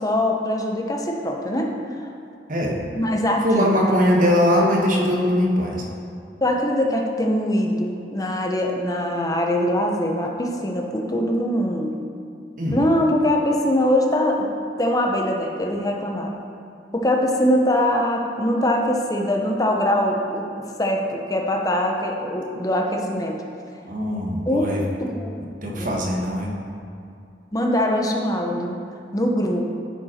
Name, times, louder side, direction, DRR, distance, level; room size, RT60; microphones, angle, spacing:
voice 1, 0.0-2.1 3.0-3.8 6.4-12.0 12.7-14.5 14.8-16.3 16.9-20.5 20.8-23.4 24.5-24.7 25.0-25.4 25.7-26.0 27.5-28.8 29.1-29.7, left 1 dB, 20° left, 1 dB, 0.8 m, -22 dB
voice 2, 3.4-5.8 12.6-12.8 23.9-24.8 25.6-26.5, equal, 50° right, -1 dB, 1.3 m, -21 dB
10.5 x 5.1 x 4.3 m, 2.5 s
head